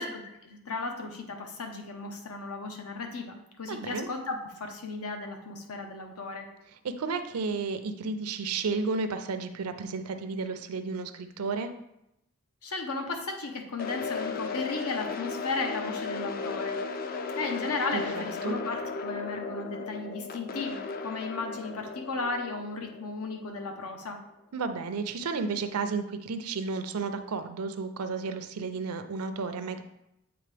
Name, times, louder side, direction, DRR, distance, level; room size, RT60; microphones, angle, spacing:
voice 1, 0.0-6.5 12.6-16.8 17.4-24.2, left 3 dB, 85° left, 4 dB, 0.9 m, -35 dB
voice 2, 3.7-4.1 6.8-11.7 17.9-18.6 24.5-29.8, right 4 dB, 85° right, 8 dB, 0.5 m, -32 dB
sound 1, 13.8-23.8, left 4 dB, 40° left, 0.4 m, -36 dB
7.9 x 3.7 x 3.3 m, 0.85 s
head